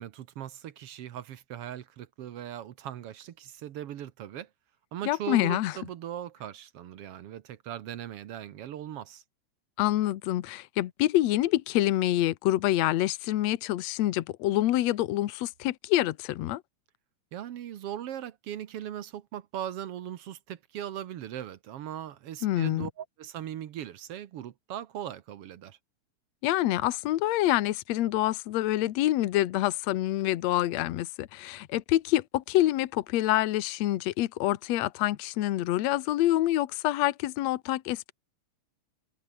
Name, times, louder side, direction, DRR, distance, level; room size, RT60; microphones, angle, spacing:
voice 1, 0.0-4.5 4.9-9.2 17.3-25.8, right 11 dB, 60° right, 1.8 m, -39 dB
voice 2, 5.1-5.7 9.8-16.6 22.4-22.9 26.4-38.1, left 15 dB, 70° left, 2.1 m, -26 dB
omnidirectional pair, 3.4 m